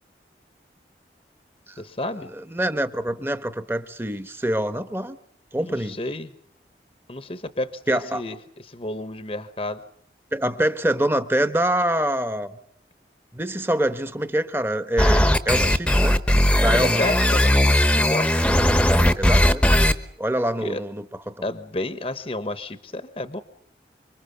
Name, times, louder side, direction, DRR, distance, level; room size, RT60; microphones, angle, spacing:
voice 1, 1.8-2.3 5.6-6.3 7.1-8.4 8.6-9.8 16.7-18.3 20.6-20.8 21.4-23.4, left 2 dB, 35° left, 11 dB, 1.0 m, -31 dB
voice 2, 2.5-5.2 5.5-6.0 7.9-8.2 10.3-12.5 13.3-16.2 16.6-17.0 18.9-19.8 20.2-21.4, right 1 dB, 15° right, 11 dB, 1.2 m, -25 dB
sound 1, 15.0-19.9, left 1 dB, 5° left, 1.0 m, -18 dB
26.0 x 24.5 x 6.9 m, 0.64 s
head